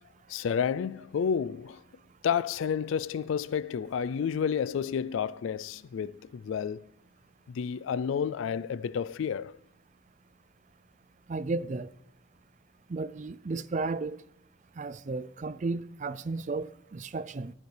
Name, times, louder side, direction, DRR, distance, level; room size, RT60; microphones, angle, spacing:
voice 1, 0.3-1.8 2.2-6.9 7.5-9.6, left 7 dB, 70° left, 0.3 m, -30 dB
voice 2, 11.3-11.9 12.9-14.2 14.8-17.5, right 3 dB, 35° right, 0.4 m, -33 dB
15.0 x 10.5 x 3.3 m
head